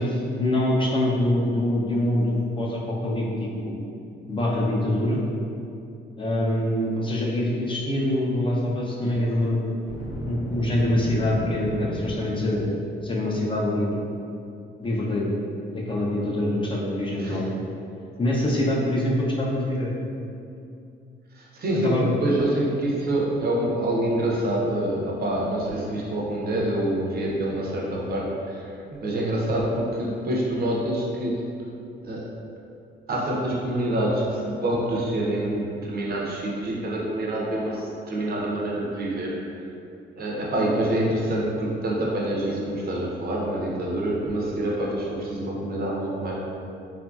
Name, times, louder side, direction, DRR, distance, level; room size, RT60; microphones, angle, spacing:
voice 1, 0.0-3.7 4.3-5.2 6.2-9.8 10.3-12.7 13.0-13.9 14.8-15.3 15.7-17.7 18.2-19.9 21.8-22.1, left 1 dB, 25° left, -4 dB, 0.4 m, -25 dB
Boom, 9.9-12.9, equal, 80° left, 0.7 m, -34 dB
voice 2, 17.2-17.5 21.4-31.4 32.0-32.3 33.1-39.3 40.2-46.3, right 1 dB, 50° right, -3 dB, 0.6 m, -26 dB
2.9 x 2.5 x 2.3 m, 2.5 s
cardioid pair, 90°, 20 cm